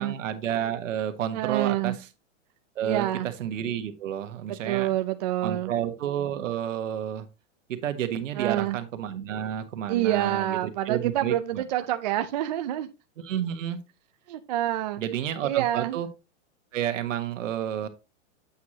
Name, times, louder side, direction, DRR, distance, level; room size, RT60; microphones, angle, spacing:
voice 1, 0.0-1.9 2.7-3.1 3.4-4.9 5.4-7.3 7.7-11.9 13.2-13.8 15.0-16.1 16.7-17.9, right 10 dB, 80° right, 1.4 m, -30 dB
voice 2, 1.3-2.0 2.8-3.3 4.5-5.7 8.3-8.8 9.9-12.9 14.3-15.0 15.4-16.0, right 13 dB, 35° right, 0.4 m, -27 dB
8.3 x 6.3 x 2.9 m
supercardioid pair, 170°, 38 cm